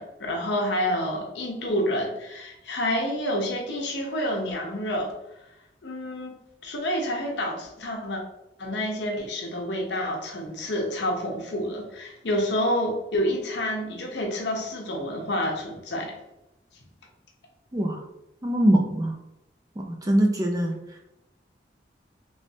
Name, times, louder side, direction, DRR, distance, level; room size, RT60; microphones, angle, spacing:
voice 1, 0.0-5.1 5.8-6.3 6.6-8.2 8.6-16.2, equal, 80° left, 1 dB, 0.7 m, -28 dB
voice 2, 18.4-19.1 19.8-20.7, right 1 dB, 20° right, 2 dB, 0.4 m, -22 dB
3.2 x 3.1 x 2.7 m, 0.92 s
head